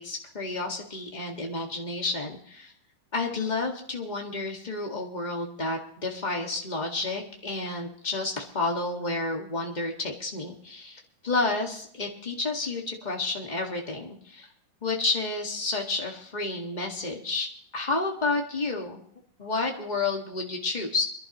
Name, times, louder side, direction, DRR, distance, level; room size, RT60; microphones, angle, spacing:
voice 1, 0.0-2.7 3.1-14.5 14.8-17.5 17.7-19.0 19.4-21.0, left 3 dB, 25° left, 1 dB, 1.1 m, -30 dB
27.0 x 11.0 x 3.1 m, 0.64 s
omnidirectional pair, 3.8 m